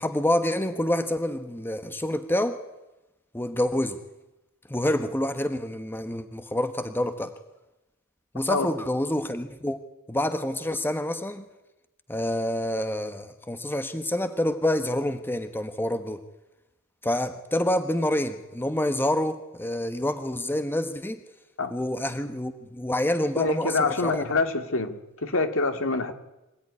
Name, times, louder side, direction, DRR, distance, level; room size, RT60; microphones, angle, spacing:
voice 1, 0.0-2.6 3.3-4.0 4.7-7.3 8.3-9.8 10.1-11.4 12.1-16.2 17.0-21.2 21.7-24.2, left 1 dB, 10° left, 8 dB, 1.2 m, -27 dB
voice 2, 23.4-26.1, left 3 dB, 65° left, 7 dB, 2.4 m, -26 dB
25.5 x 16.5 x 9.8 m, 0.98 s
head